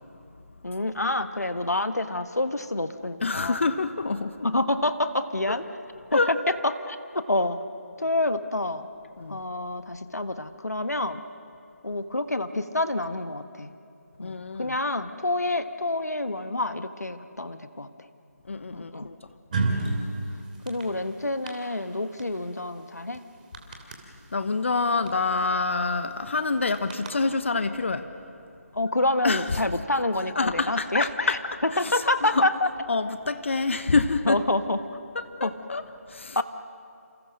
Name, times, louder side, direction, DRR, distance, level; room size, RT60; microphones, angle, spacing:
voice 1, 0.6-3.6 4.4-5.6 6.1-7.6 8.0-8.9 9.3-11.2 11.8-13.7 14.2-17.9 18.7-19.1 20.6-23.2 28.7-32.7 34.3-34.8 35.4-35.5 36.3-36.4, left 2 dB, 80° left, 9 dB, 1.5 m, -27 dB
voice 2, 3.2-4.5 5.5-5.6 6.1-6.3 9.2-9.4 14.2-14.8 18.4-19.2 24.3-28.1 29.2-29.6 30.3-31.4 31.7-32.5 32.9-34.4 35.1-35.8 36.1-36.4, left 3 dB, 50° left, 11 dB, 1.1 m, -27 dB
sound 1, 19.5-20.0 20.5-20.8 21.5-21.6 22.2-22.3 22.5-22.6 23.1-23.2 23.5-23.9 25.1-25.2 25.4-25.6 26.7-27.1, right 3 dB, 30° right, 2.9 m, -27 dB
28.5 x 28.0 x 6.5 m, 2.6 s
figure-of-eight pair, 155°, 9 cm